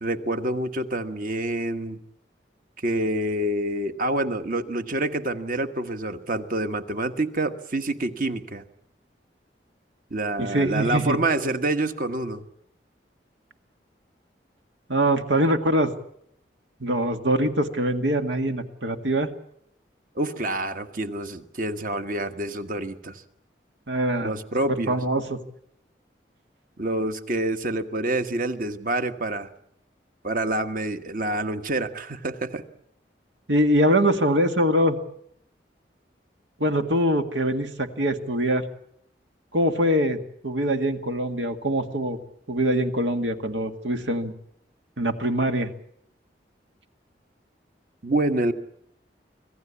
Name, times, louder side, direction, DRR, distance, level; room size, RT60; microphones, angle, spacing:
voice 1, 0.0-2.0 2.8-8.6 10.1-12.4 20.1-23.2 24.2-25.0 26.8-29.5 30.2-32.6 48.0-48.5, right 2 dB, 50° right, 8 dB, 1.4 m, -27 dB
voice 2, 10.4-11.2 14.9-15.9 16.8-19.3 23.9-24.3 24.7-25.4 33.5-35.0 36.6-38.6 39.5-42.2 42.5-44.3 45.0-45.7, right 1 dB, 90° right, 7 dB, 2.0 m, -23 dB
26.0 x 16.5 x 8.5 m, 0.73 s
head